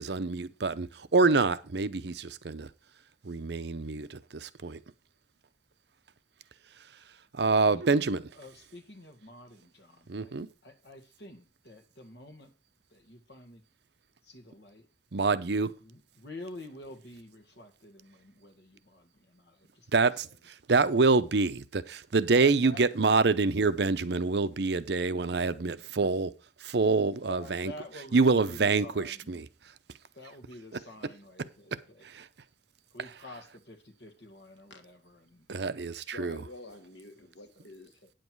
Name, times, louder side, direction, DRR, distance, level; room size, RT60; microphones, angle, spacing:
voice 1, 0.0-2.7 3.2-4.8 7.3-8.3 10.1-10.5 15.1-15.7 19.9-26.3 26.6-27.7 28.1-29.5 32.0-32.3 35.5-36.4, right 3 dB, 65° right, 0.7 m, -26 dB
voice 2, 7.7-10.4 10.6-12.5 12.9-13.6 14.2-14.9 15.8-19.9 20.2-20.3 22.4-22.8 27.3-29.4 30.1-32.1 32.9-35.5 37.2-37.3 37.6-37.7 38.0-38.1, left 1 dB, 70° left, 1.8 m, -48 dB
voice 3, 36.0-38.0, left 2 dB, 85° left, 1.6 m, -48 dB
9.3 x 7.7 x 4.6 m
head